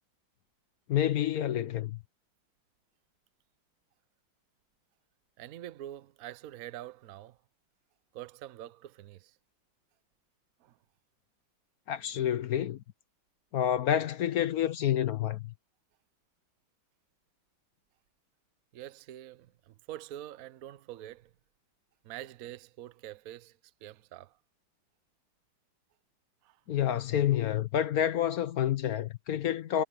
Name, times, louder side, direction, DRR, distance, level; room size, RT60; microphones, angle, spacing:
voice 1, 0.9-2.0 11.9-12.8 13.5-15.5 26.7-29.8, left 10 dB, 65° left, 0.9 m, -28 dB
voice 2, 5.4-7.4 8.1-9.3 10.6-10.8 18.7-21.3 22.0-24.4 26.4-26.6, right 13 dB, 60° right, 1.0 m, -45 dB
omnidirectional pair, 2.2 m